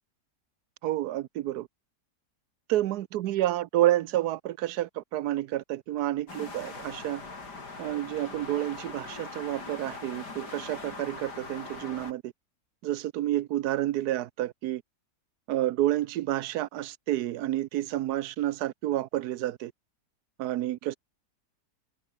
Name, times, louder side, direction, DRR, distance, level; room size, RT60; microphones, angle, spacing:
voice 1, 0.8-1.7 2.7-7.2 7.8-12.3 12.8-14.8 15.5-19.7 20.4-21.0, right 14 dB, 75° right, 1.2 m, -29 dB
sound 1, 6.3-12.1, left 3 dB, 85° left, 4.5 m, -41 dB
omnidirectional pair, 1.7 m